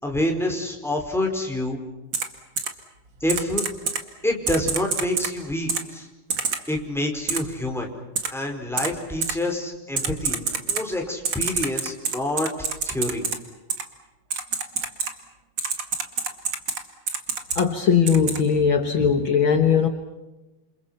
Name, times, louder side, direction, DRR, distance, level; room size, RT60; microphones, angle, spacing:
voice 1, 0.0-1.8 3.2-3.6 4.2-6.1 6.7-7.9 8.3-12.5 12.9-13.2, left 1 dB, ahead, 1 dB, 4.3 m, -27 dB
Typing, 2.1-2.2 2.6-2.7 3.3-4.0 4.5-5.3 5.7-5.8 6.3-6.6 7.3-7.4 8.2-8.3 8.8-8.9 9.2-9.3 10.0-10.8 11.2-13.3 13.7-13.8 14.3-15.1 15.6-16.8 17.1-17.6 18.1-18.4, right 5 dB, 40° right, 2.0 m, -26 dB
voice 2, 17.5-19.9, left 7 dB, 65° left, 6 dB, 1.2 m, -19 dB
28.5 x 28.0 x 5.9 m, 1.1 s
omnidirectional pair, 4.4 m